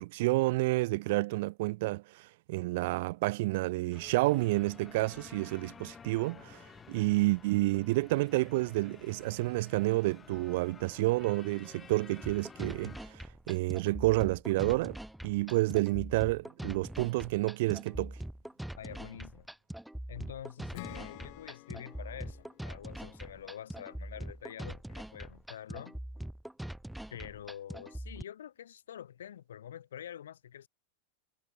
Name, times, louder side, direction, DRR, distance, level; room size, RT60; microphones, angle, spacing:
voice 1, 0.0-15.0 15.2-18.1, right 21 dB, 50° right, 0.6 m, -30 dB
sound 1, 3.9-13.0, left 6 dB, 20° left, 2.2 m, -52 dB
sound 2, 12.2-28.2, right 1 dB, ahead, 3.3 m, -43 dB
voice 2, 18.7-19.5 20.1-26.0 27.1-30.7, left 10 dB, 65° left, 2.4 m, -46 dB
Acoustic guitar / Strum, 20.7-24.2, left 32 dB, 45° left, 4.6 m, -51 dB
figure-of-eight pair, 90°, 0 cm